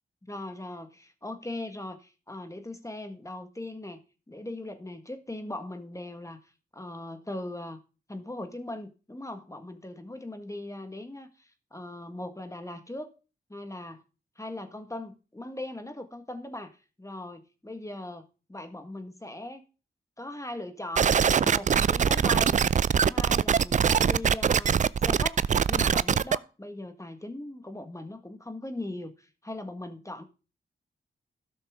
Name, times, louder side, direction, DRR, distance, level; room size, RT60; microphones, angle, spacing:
voice 1, 0.2-4.0 4.3-6.4 6.7-7.8 8.1-13.1 13.5-14.0 14.4-16.7 17.0-19.6 20.2-21.1 21.4-22.6 23.1-24.7 25.0-25.4 25.7-30.2, left 1 dB, 15° left, 1.7 m, -39 dB
sound 1, 21.0-26.4, right 7 dB, 40° right, 0.4 m, -23 dB
12.5 x 6.5 x 3.7 m
cardioid pair, 45°, 20 cm